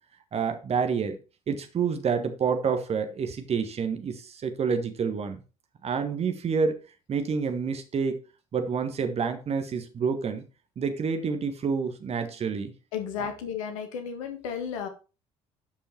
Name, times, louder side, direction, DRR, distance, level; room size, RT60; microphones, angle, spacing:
voice 1, 0.3-1.2 1.5-5.4 5.8-6.8 7.1-8.2 8.5-10.4 10.8-12.7 13.2-13.3, right 5 dB, 35° right, 1.6 m, -28 dB
voice 2, 12.9-14.9, left 7 dB, 70° left, 1.7 m, -33 dB
12.0 x 5.6 x 4.5 m
figure-of-eight pair, 55°, 17 cm